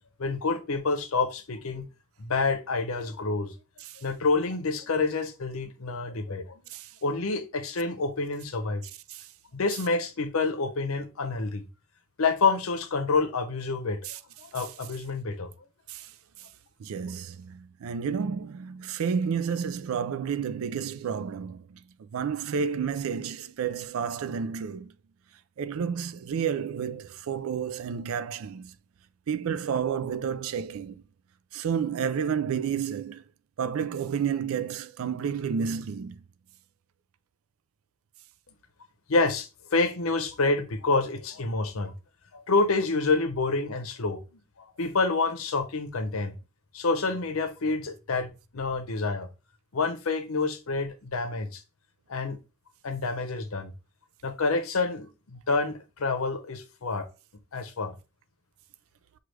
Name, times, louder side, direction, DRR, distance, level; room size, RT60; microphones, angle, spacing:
voice 1, 0.2-1.8 2.2-3.5 4.0-6.6 7.0-8.8 9.5-11.6 12.2-14.0 14.4-15.5 39.1-41.9 42.3-44.4 44.8-46.4 46.7-49.3 49.7-51.6 52.1-52.4 52.8-53.7 54.2-57.1 57.5-58.0, left 3 dB, 80° left, 0.7 m, -28 dB
voice 2, 16.8-21.6 22.1-24.9 25.6-28.7 29.3-31.0 31.5-33.2 33.6-36.2, right 7 dB, 75° right, 0.4 m, -30 dB
6.0 x 2.4 x 3.2 m
head